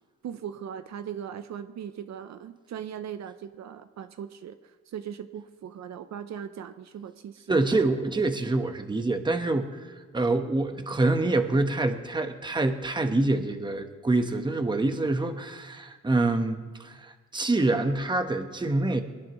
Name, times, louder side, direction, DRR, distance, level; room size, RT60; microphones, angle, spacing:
voice 1, 0.2-7.6, right 8 dB, 65° right, 10 dB, 0.7 m, -39 dB
voice 2, 7.5-19.0, right 2 dB, 15° right, 6 dB, 1.1 m, -26 dB
22.5 x 18.5 x 3.1 m, 1.4 s
cardioid pair, 120°, 29 cm